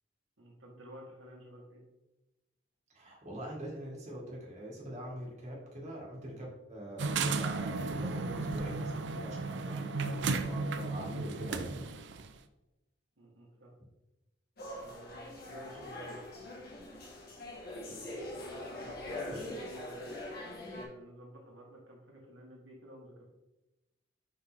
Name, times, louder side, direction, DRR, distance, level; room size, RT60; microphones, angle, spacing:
voice 1, 0.4-1.8 13.2-13.7 14.7-16.6 17.9-20.2 20.7-23.3, equal, 80° right, -2 dB, 1.6 m, -52 dB
voice 2, 2.9-11.8, equal, 40° right, -4 dB, 2.0 m, -43 dB
sound 1, 7.0-12.3, right 4 dB, 65° right, 0.5 m, -34 dB
sound 2, 14.6-20.9, left 1 dB, 55° left, 1.6 m, -43 dB
5.8 x 5.6 x 3.6 m, 1.0 s
head